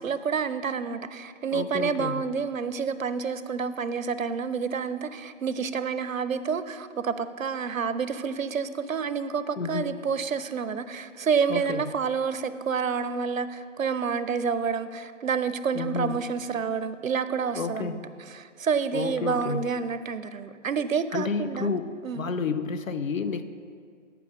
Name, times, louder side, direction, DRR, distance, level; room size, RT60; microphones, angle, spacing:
voice 1, 0.0-18.0 18.3-21.7 22.0-22.2, right 6 dB, 85° right, 13 dB, 0.6 m, -29 dB
voice 2, 1.5-2.2 9.6-9.9 11.5-11.8 15.7-16.2 17.5-18.1 18.9-19.7 21.1-21.9 22.1-23.4, left 5 dB, 85° left, 11 dB, 0.7 m, -30 dB
10.0 x 4.9 x 5.1 m, 2.2 s
figure-of-eight pair, 155°, 39 cm